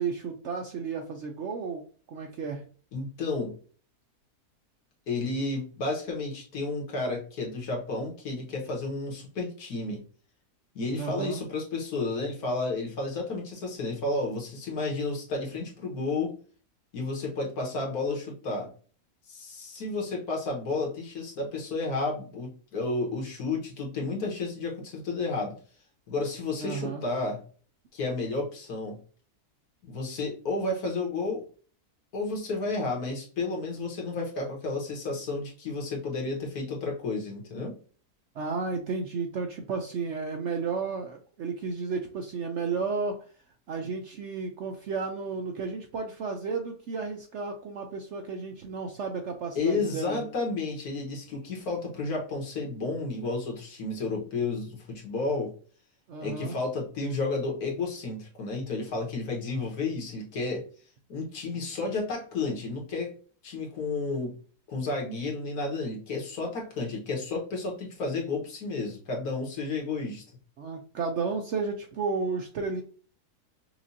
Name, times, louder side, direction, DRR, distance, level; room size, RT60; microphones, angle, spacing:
voice 1, 0.0-1.8 2.1-2.6 11.0-11.4 26.6-27.0 38.3-43.2 43.7-50.3 56.1-56.6 70.6-72.8, right 4 dB, 65° right, 4 dB, 0.7 m, -33 dB
voice 2, 2.9-3.6 5.1-10.0 10.8-16.3 16.9-18.7 19.3-25.6 26.1-27.4 27.9-29.0 29.8-31.4 32.1-37.7 49.6-55.5 56.2-60.6 61.1-63.1 63.4-64.4 64.7-70.2, left 3 dB, 70° left, 0 dB, 1.7 m, -32 dB
5.9 x 2.4 x 2.6 m, 0.41 s
omnidirectional pair, 1.7 m